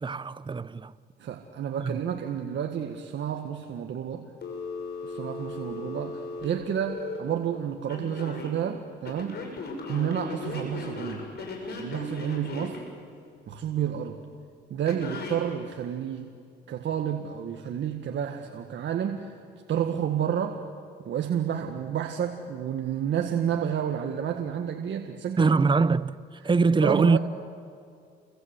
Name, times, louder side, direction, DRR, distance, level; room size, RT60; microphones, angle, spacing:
voice 1, 0.0-0.9 1.8-1.9 25.4-26.2 26.4-27.2, right 4 dB, 25° right, 0.8 m, -22 dB
voice 2, 1.2-4.2 5.0-9.4 9.9-11.3 11.8-12.8 13.5-14.2 14.7-16.3 16.7-19.4 19.7-20.6 21.1-25.6 26.8-27.2, right 9 dB, 65° right, 1.7 m, -30 dB
Telephone, 4.4-7.2 7.9-8.5 9.0-12.8 14.9-15.4, left 3 dB, 55° left, 6.5 m, -36 dB
29.0 x 23.5 x 8.2 m
cardioid pair, 90°, 20 cm